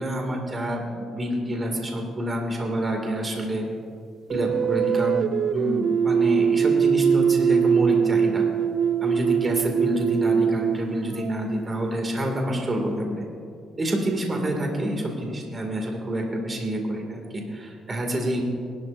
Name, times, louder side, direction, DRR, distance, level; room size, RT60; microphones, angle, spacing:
voice 1, 0.0-3.6 4.3-8.4 9.0-13.2 13.8-18.4, equal, 30° right, 1 dB, 2.3 m, -27 dB
sound 1, 4.3-11.6, right 7 dB, 65° right, 0.3 m, -22 dB
21.0 x 12.5 x 2.6 m, 2.3 s
cardioid pair, 90°, 0 cm